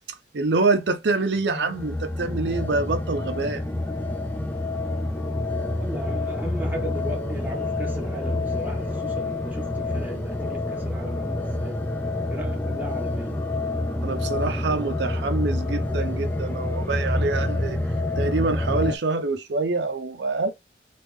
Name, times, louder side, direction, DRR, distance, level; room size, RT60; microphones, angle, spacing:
voice 1, 0.3-3.6 14.0-17.8 18.2-20.5, right 3 dB, 70° right, 0.5 m, -25 dB
sound 1, 1.5-19.0, left 2 dB, 10° left, 0.4 m, -27 dB
voice 2, 5.8-11.8 12.3-13.4, equal, 10° right, 1.1 m, -37 dB
3.5 x 2.4 x 3.0 m
head